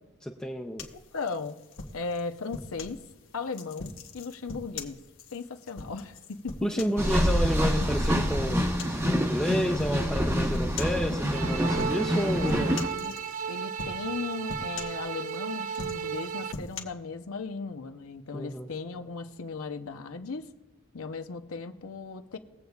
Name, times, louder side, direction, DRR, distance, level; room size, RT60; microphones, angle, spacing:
voice 1, 0.2-0.9 6.6-8.7 9.1-12.8 18.3-18.7, equal, 5° left, 1 dB, 0.5 m, -30 dB
sound 1, 0.8-3.0 3.5-7.3 7.8-8.2 8.5-9.1 9.8-10.0 10.5-11.0 11.7-12.2 12.5-13.5 13.8-14.2 14.5-15.4 15.7-16.8, left 3 dB, 65° left, 1.2 m, -40 dB
voice 2, 0.9-1.6 1.9-3.0 3.3-5.0 5.3-6.6 12.9-13.2 13.5-20.5 20.9-22.4, left 4 dB, 90° left, 7 dB, 0.7 m, -37 dB
sound 2, 7.0-12.9, equal, 15° right, 0.9 m, -26 dB
sound 3, 11.3-16.5, right 7 dB, 75° right, 0.4 m, -34 dB
21.0 x 7.9 x 2.4 m, 1.1 s
head